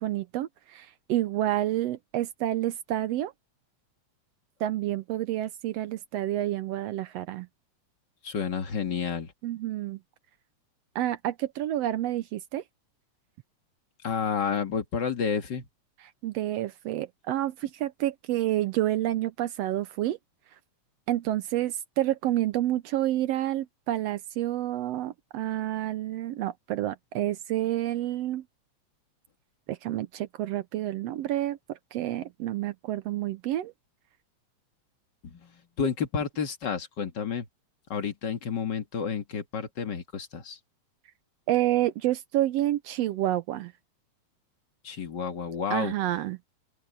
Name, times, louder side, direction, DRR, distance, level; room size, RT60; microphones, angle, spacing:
voice 1, 0.0-3.3 4.6-7.5 9.4-10.0 10.9-12.6 16.2-20.2 21.1-28.4 29.7-33.7 41.5-43.7 45.7-46.4, right 14 dB, 75° right, 1.6 m, -29 dB
voice 2, 8.2-9.3 14.0-15.6 35.2-35.5 35.8-37.5 37.9-40.6 44.8-45.9, left 6 dB, 40° left, 2.1 m, -30 dB
open air
omnidirectional pair, 3.3 m